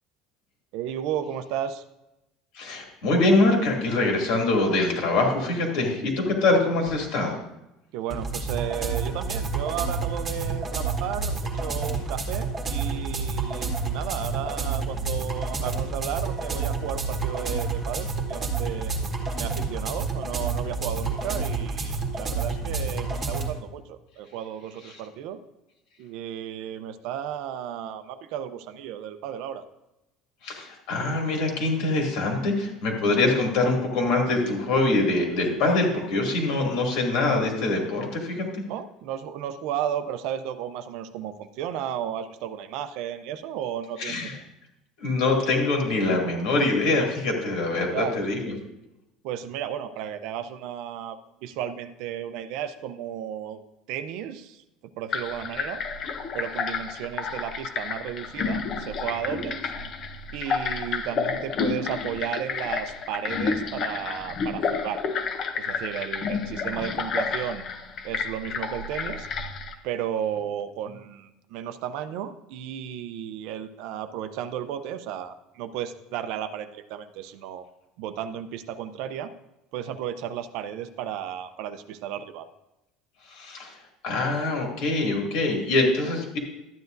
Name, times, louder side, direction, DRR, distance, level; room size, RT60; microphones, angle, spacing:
voice 1, 0.7-1.8 7.9-18.9 19.3-25.4 26.0-29.6 38.7-44.5 47.9-48.2 49.2-53.6 53.9-54.6 55.0-55.8 56.3-59.7 60.3-65.0 65.5-67.6 68.0-69.3 69.8-77.7 78.0-79.3 79.7-82.5, right 9 dB, 55° right, 10 dB, 0.6 m, -33 dB
voice 2, 2.5-7.4 30.4-38.6 44.0-44.4 45.0-48.5 83.3-83.8 84.0-86.4, left 2 dB, 60° left, 0 dB, 2.5 m, -24 dB
sound 1, 8.1-23.5, right 4 dB, 20° right, 1.4 m, -29 dB
sound 2, 55.1-69.7, left 5 dB, 30° left, 0.6 m, -30 dB
12.5 x 9.4 x 2.6 m, 0.92 s
cardioid pair, 175°, 0 cm